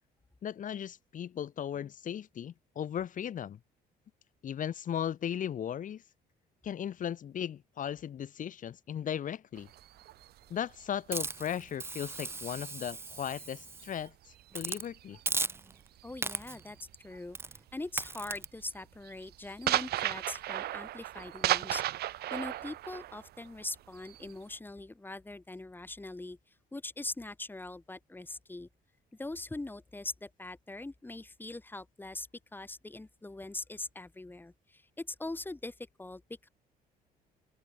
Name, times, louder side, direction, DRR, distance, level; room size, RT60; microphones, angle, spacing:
voice 1, 0.4-3.6 4.4-6.0 6.6-9.7 10.5-14.1 14.5-15.2, left 9 dB, 50° left, 4.3 m, -36 dB
sound 1, 9.6-13.4 13.8-17.2 17.4-17.8 18.2-24.6, right 14 dB, 70° right, 1.7 m, -36 dB
Hiss, 11.1-14.0 14.5-14.9 15.3-15.9 16.2-16.7 17.3-17.6 18.0-18.5, right 3 dB, 15° right, 0.6 m, -37 dB
voice 2, 16.0-16.8 17.0-17.4 17.7-21.8 22.3-26.4 26.7-28.7 29.2-36.5, left 2 dB, 10° left, 2.7 m, -42 dB
open air
cardioid pair, 110°, 17 cm